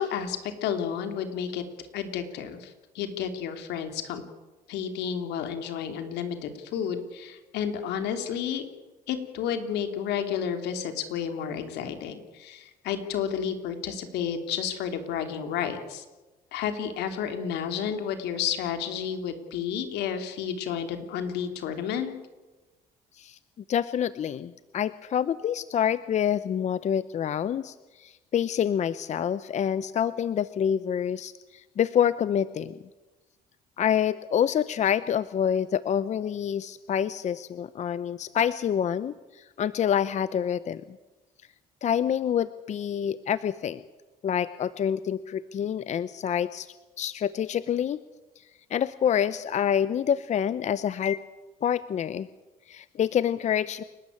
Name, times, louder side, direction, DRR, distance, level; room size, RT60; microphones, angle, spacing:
voice 1, 0.0-1.6 1.9-4.2 4.7-8.7 9.1-16.0 16.5-22.1, left 8 dB, 85° left, 7 dB, 3.0 m, -31 dB
voice 2, 23.7-32.8 33.8-40.8 41.8-43.8 44.2-46.7 47.0-48.0 48.4-48.5 48.7-51.2 51.6-52.3 52.7-53.8, left 9 dB, 45° left, 15 dB, 0.7 m, -27 dB
29.0 x 12.5 x 8.7 m, 1.1 s
cardioid pair, 110°, 17 cm